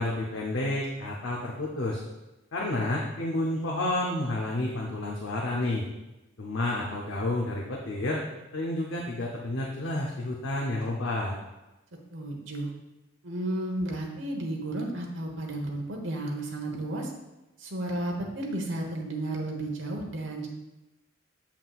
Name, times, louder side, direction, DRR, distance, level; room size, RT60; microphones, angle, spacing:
voice 1, 0.0-2.0 2.5-5.8 6.4-8.2 8.5-11.3, left 1 dB, 75° left, -2 dB, 0.8 m, -30 dB
voice 2, 12.1-12.7 13.2-17.1 17.6-20.5, right 1 dB, 70° right, 1 dB, 1.1 m, -33 dB
7.4 x 5.8 x 2.4 m, 1.0 s
head